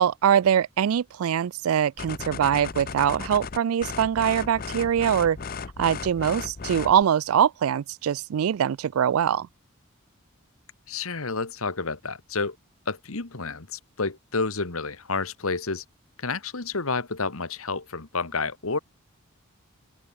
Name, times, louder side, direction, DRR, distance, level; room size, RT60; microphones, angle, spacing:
voice 1, 0.0-5.4 5.8-9.5, right 9 dB, 75° right, 0.3 m, -23 dB
sound 1, 2.0-7.0, left 5 dB, 40° left, 0.6 m, -36 dB
voice 2, 10.9-12.6 12.9-15.8 16.2-18.8, left 4 dB, 75° left, 1.7 m, -30 dB
open air
head